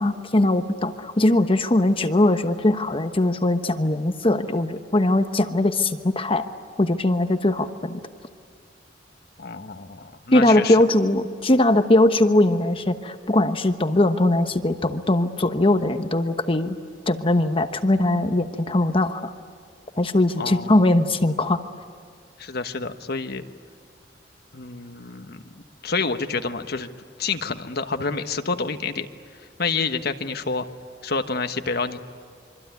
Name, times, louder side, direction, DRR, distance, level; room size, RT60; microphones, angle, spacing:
voice 1, 0.0-6.5 6.8-8.0 10.3-16.8 17.1-19.3 20.0-21.6, left 1 dB, 30° left, 8 dB, 1.1 m, -20 dB
voice 2, 9.4-10.8 20.4-20.9 22.4-23.4 24.5-26.9 27.2-29.1 29.6-30.7 31.0-32.0, left 4 dB, 60° left, 8 dB, 1.3 m, -28 dB
26.0 x 24.5 x 9.5 m, 2.2 s
head